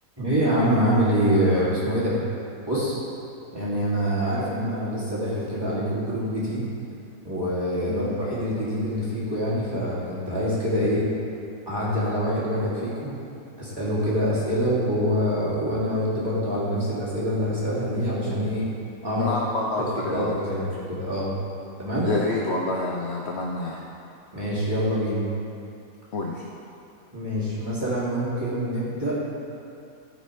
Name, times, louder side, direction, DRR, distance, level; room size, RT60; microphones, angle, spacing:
voice 1, 0.2-2.2 2.6-2.9 3.5-6.7 7.2-11.1 11.7-13.2 13.6-18.7 19.0-19.3 19.8-21.3 21.8-22.1 24.3-25.2 27.1-29.2, equal, 15° right, -9 dB, 2.6 m, -25 dB
voice 2, 19.2-20.5 22.0-23.8 26.1-26.5, left 2 dB, 55° left, -1 dB, 0.9 m, -28 dB
14.0 x 5.2 x 4.8 m, 2.6 s
omnidirectional pair, 1.7 m